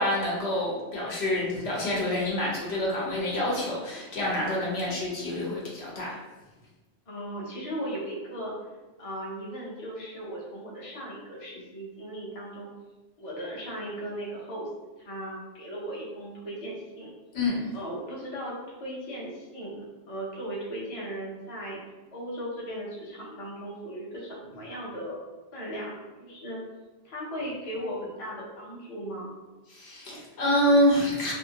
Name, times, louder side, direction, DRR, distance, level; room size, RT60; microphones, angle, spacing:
voice 1, 0.0-6.1 17.3-17.7 29.7-31.3, left 1 dB, 75° left, -4 dB, 1.1 m, -27 dB
voice 2, 7.1-8.5 9.0-12.7 13.2-14.7 15.0-17.1 17.7-21.8 22.1-25.2 25.5-26.6 27.0-29.4, equal, 35° left, -5 dB, 0.7 m, -37 dB
2.7 x 2.6 x 2.8 m, 1.2 s
omnidirectional pair, 1.1 m